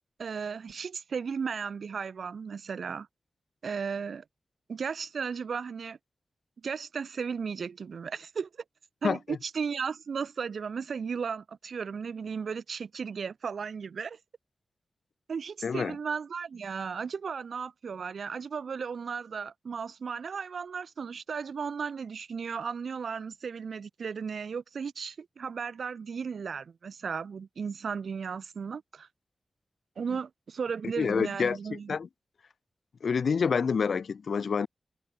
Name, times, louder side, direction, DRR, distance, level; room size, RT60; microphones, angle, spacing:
voice 1, 0.2-3.1 3.6-4.2 4.7-6.0 6.6-8.5 9.0-14.2 15.3-29.1 30.0-32.0, right 6 dB, 85° right, 7.7 m, -35 dB
voice 2, 9.0-9.4 15.6-15.9 31.0-32.1 33.0-34.7, left 6 dB, 80° left, 3.3 m, -28 dB
wide cardioid pair, 145°, 0 cm